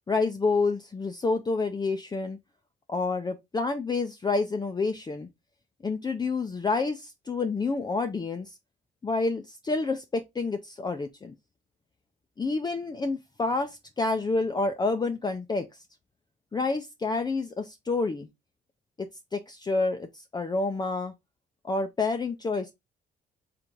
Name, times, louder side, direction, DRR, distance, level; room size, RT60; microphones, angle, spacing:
voice 1, 0.1-2.4 2.9-5.3 5.8-8.6 9.0-11.3 12.4-15.7 16.5-18.3 19.0-21.1 21.6-22.7, left 3 dB, 20° left, 0.5 m, -28 dB
3.2 x 3.1 x 3.8 m
cardioid pair, 90°, 20 cm